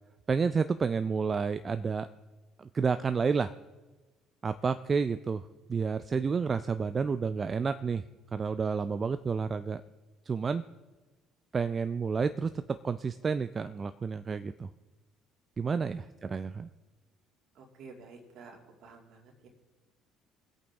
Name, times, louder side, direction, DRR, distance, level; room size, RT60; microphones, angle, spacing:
voice 1, 0.3-2.1 2.6-3.5 4.4-5.4 5.7-8.0 8.3-9.8 10.3-10.6 11.5-12.5 12.8-14.7 15.6-16.7, right 5 dB, 35° right, 11 dB, 0.4 m, -30 dB
voice 2, 17.5-19.5, right 4 dB, 60° right, 2 dB, 2.5 m, -52 dB
22.0 x 8.4 x 3.5 m, 1.2 s
hypercardioid pair, 60°, 0 cm